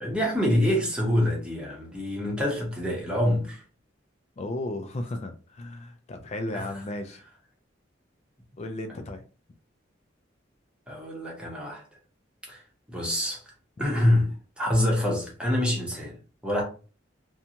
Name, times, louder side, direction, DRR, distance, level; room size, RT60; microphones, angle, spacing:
voice 1, 0.0-3.6 6.5-6.7 10.9-11.8 12.5-12.6 12.9-13.4 13.8-14.3 14.6-16.1 16.4-16.6, left 1 dB, 5° right, 0.8 m, -26 dB
voice 2, 4.4-7.2 8.6-9.2, left 1 dB, 35° left, 0.3 m, -34 dB
2.6 x 2.2 x 2.8 m
head